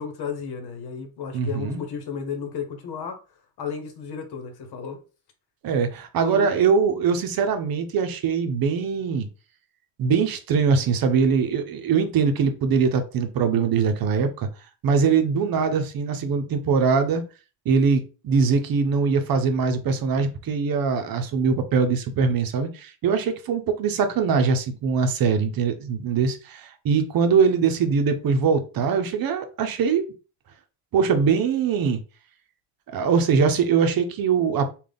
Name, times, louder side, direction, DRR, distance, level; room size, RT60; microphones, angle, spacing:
voice 1, 0.0-3.2 3.6-5.0 6.2-6.5, left 6 dB, 65° left, 1.0 m, -33 dB
voice 2, 1.3-1.8 5.6-9.3 10.0-14.5 14.8-17.2 17.7-30.0 30.9-32.0 32.9-34.7, right 5 dB, 55° right, 0.7 m, -22 dB
3.8 x 2.4 x 3.4 m
cardioid pair, 130°, 41 cm